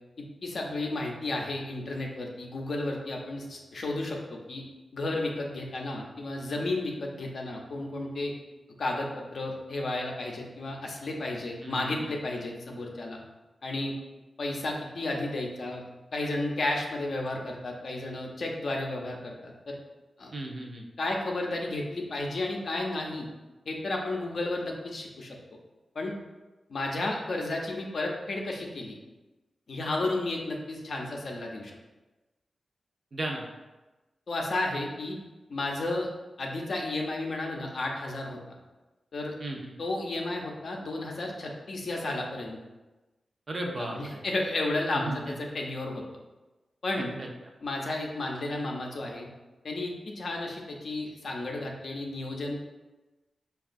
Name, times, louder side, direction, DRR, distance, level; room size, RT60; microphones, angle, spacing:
voice 1, 0.4-4.6 4.9-8.3 8.8-13.2 13.6-13.9 14.4-15.8 16.1-19.8 20.2-20.3 21.0-23.3 23.7-25.4 25.9-26.1 26.7-28.9 29.7-31.7 34.3-35.2 35.5-36.1 36.4-38.4 39.1-39.3 39.8-42.6 43.6-46.0 46.8-47.1 47.6-49.3 49.6-52.6, left 2 dB, 60° left, 0 dB, 0.5 m, -32 dB
voice 2, 11.6-12.0 20.3-20.8 33.1-33.4 39.4-39.7 43.5-44.2 44.9-45.3 47.2-47.3, right 1 dB, 40° right, 0 dB, 0.5 m, -35 dB
5.3 x 2.3 x 2.5 m, 1.1 s
wide cardioid pair, 150°, 0 cm